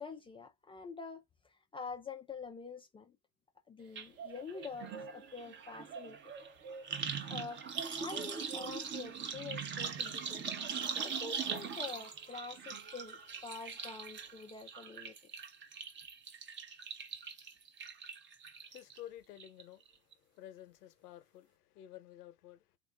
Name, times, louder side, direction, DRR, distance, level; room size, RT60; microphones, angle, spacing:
voice 1, 0.0-3.2 3.7-6.2 7.3-10.5 11.0-15.1, left 4 dB, 15° left, 0.4 m, -46 dB
sound 1, 3.8-12.0 12.6-14.7, right 5 dB, 75° right, 1.1 m, -52 dB
sound 2, 4.0-4.1 4.4-19.0 19.4-19.9 20.1-20.2, right 6 dB, 25° right, 0.8 m, -41 dB
voice 2, 18.7-22.8, left 12 dB, 85° left, 0.9 m, -52 dB
3.6 x 2.6 x 3.2 m
supercardioid pair, 120°, 45 cm